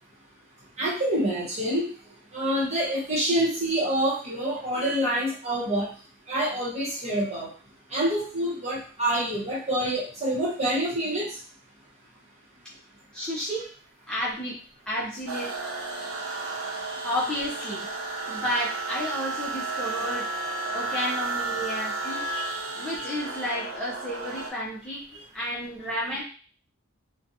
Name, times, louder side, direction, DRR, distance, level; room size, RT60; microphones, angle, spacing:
voice 1, 0.8-1.9 2.3-5.9 6.3-7.5 7.9-11.4 22.3-22.6, right 1 dB, 35° right, -6 dB, 1.2 m, -27 dB
voice 2, 13.1-13.7 14.1-14.6 14.9-15.5 17.0-17.9 18.3-20.3 20.7-22.3 22.8-25.1 25.3-26.2, equal, 5° left, -8 dB, 0.5 m, -31 dB
sound 1, 15.3-24.5, right 3 dB, 85° right, 0.6 m, -32 dB
2.6 x 2.2 x 2.7 m, 0.41 s
head